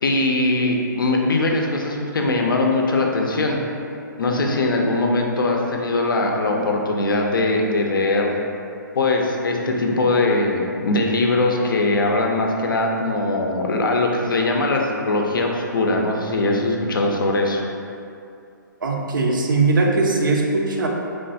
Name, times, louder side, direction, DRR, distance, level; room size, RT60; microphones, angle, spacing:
voice 1, 0.0-3.6 4.2-8.3 8.9-17.6, left 2 dB, 80° left, 1 dB, 0.4 m, -21 dB
voice 2, 18.8-20.9, right 3 dB, 70° right, 0 dB, 0.5 m, -20 dB
3.1 x 2.2 x 2.6 m, 2.5 s
figure-of-eight pair, 130°, 11 cm